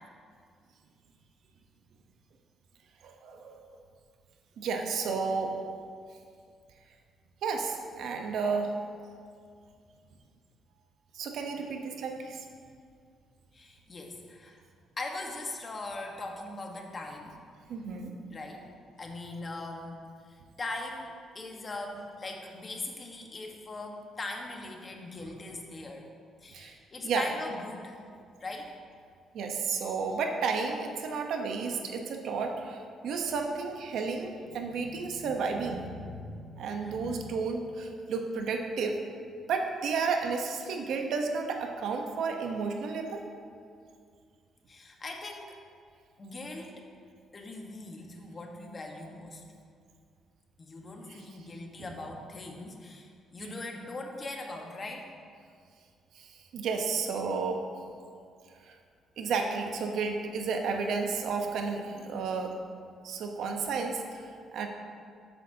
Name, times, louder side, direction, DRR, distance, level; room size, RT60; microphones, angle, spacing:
voice 1, 3.0-3.6 4.6-5.6 7.4-8.7 11.1-12.4 17.7-18.1 26.5-26.7 27.0-27.3 29.3-35.8 36.6-39.0 39.5-43.2 51.1-51.2 51.8-51.9 56.1-57.6 58.6-58.8 59.2-62.5 63.0-64.3 64.5-64.7, right 5 dB, 75° right, 3 dB, 1.0 m, -32 dB
voice 2, 13.5-14.6 15.0-17.4 18.3-18.7 19.0-20.0 20.3-26.1 26.4-28.0 28.4-28.7 34.5-37.3 44.7-45.5 46.2-46.8 47.3-49.4 50.6-55.1, left 2 dB, 35° left, 2 dB, 1.4 m, -41 dB
13.0 x 8.1 x 2.9 m, 2.2 s
cardioid pair, 90°, 0 cm